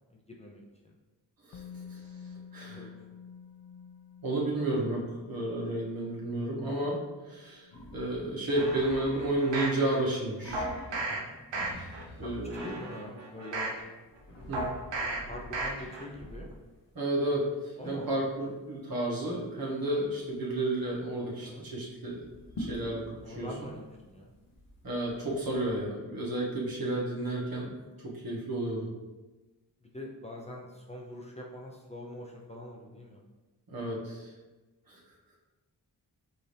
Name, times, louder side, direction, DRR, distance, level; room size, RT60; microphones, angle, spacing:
voice 1, 0.1-0.9 2.7-2.9 11.0-11.4 12.5-13.7 15.3-16.5 17.8-18.1 21.5-21.7 23.2-24.3 29.8-33.2, left 1 dB, 15° left, -2 dB, 0.6 m, -44 dB
Musical instrument, 1.5-9.4 9.7-9.9, left 6 dB, 60° left, 0.5 m, -51 dB
voice 2, 2.5-2.9 4.2-7.0 7.3-10.7 11.1-11.2 12.2-12.7 14.5-14.7 16.9-22.2 22.6-23.5 24.8-27.7 28.0-28.9 33.7-34.3 34.9-35.0, right 1 dB, 55° right, -4 dB, 1.4 m, -32 dB
sound 1, 7.7-12.8 14.0-16.8 20.3-20.4 20.7-21.1 22.1-25.8, left 1 dB, 75° left, 0.9 m, -46 dB
sound 2, 8.5-9.8 10.5-11.2 11.5-12.0 12.5-13.8 14.5-15.2 15.5-16.0 16.4-16.5, right 2 dB, 85° right, 0.8 m, -35 dB
5.3 x 2.7 x 3.3 m, 1.2 s
cardioid pair, 55°, 42 cm